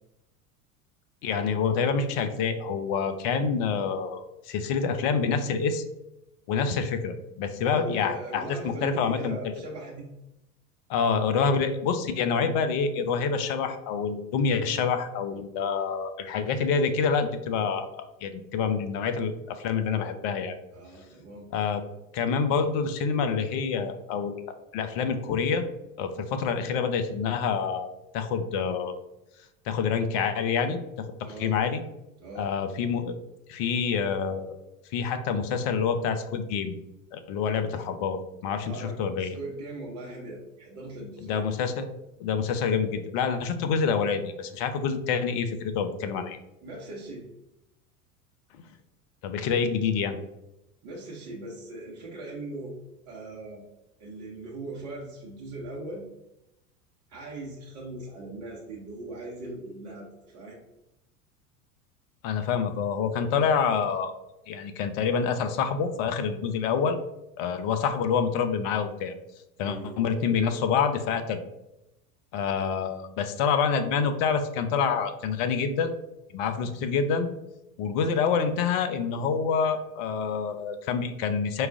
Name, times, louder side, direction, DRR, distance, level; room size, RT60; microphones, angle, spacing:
voice 1, 1.2-5.8 6.5-9.4 10.9-17.9 18.2-20.5 21.5-21.8 22.1-24.4 24.7-25.6 26.0-28.9 29.7-31.1 31.4-31.8 32.4-33.1 33.5-34.6 34.9-36.7 37.1-39.3 41.2-41.9 42.2-46.4 49.2-50.2 62.2-64.1 64.5-67.0 67.4-69.1 69.6-71.4 72.3-75.9 76.3-77.3 77.8-81.7, left 6 dB, 40° left, 8 dB, 0.5 m, -27 dB
voice 2, 7.6-10.1 20.7-21.5 31.2-31.6 32.2-32.5 38.6-41.5 46.6-47.3 50.8-52.8 53.1-53.6 54.0-56.0 57.1-60.6 69.6-70.2, right 2 dB, 45° right, -3 dB, 1.0 m, -40 dB
4.6 x 2.4 x 3.6 m, 0.89 s
figure-of-eight pair, 75°, 44 cm